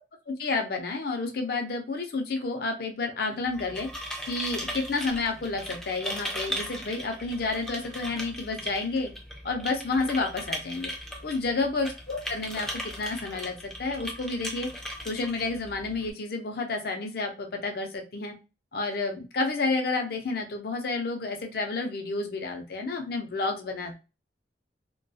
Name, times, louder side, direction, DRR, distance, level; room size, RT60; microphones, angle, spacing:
voice 1, 0.3-3.9 4.3-9.1 9.4-10.9 11.2-18.3 18.7-23.9, left 3 dB, 55° left, 3 dB, 0.5 m, -30 dB
sound 1, 3.4-16.1, equal, 5° left, 0.4 m, -38 dB
2.3 x 2.2 x 2.6 m, 0.30 s
head